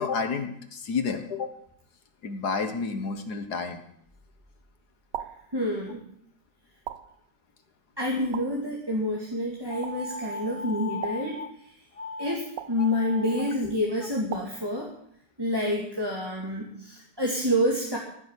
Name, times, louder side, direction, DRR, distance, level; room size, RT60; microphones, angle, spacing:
voice 1, 0.0-1.5 2.2-3.8, left 5 dB, 65° left, 7 dB, 1.8 m, -30 dB
sound 1, 5.1-5.5 6.9-7.3 8.3-8.7 9.8-10.1 11.0-11.4 12.6-12.9 14.3-14.7, right 11 dB, 90° right, 1.4 m, -39 dB
voice 2, 5.5-6.0 8.0-11.4 12.2-14.9 15.4-18.0, left 1 dB, 15° right, -3 dB, 2.2 m, -28 dB
sound 2, 9.7-11.5 11.9-12.3 12.7-13.5, left 2 dB, 25° left, 1.0 m, -37 dB
15.0 x 7.0 x 9.8 m, 0.68 s
omnidirectional pair, 1.9 m